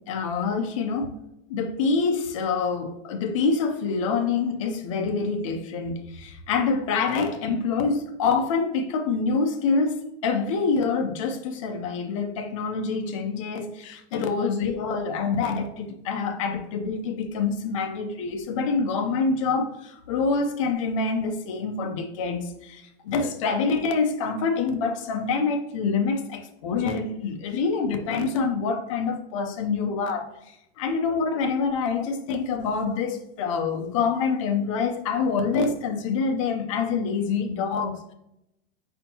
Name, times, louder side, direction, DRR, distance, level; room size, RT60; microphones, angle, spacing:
voice 1, 0.1-1.2 1.5-30.3 30.8-38.1, left 4 dB, 30° left, 0.4 m, -26 dB
4.4 x 4.3 x 2.7 m
supercardioid pair, 180°, 33 cm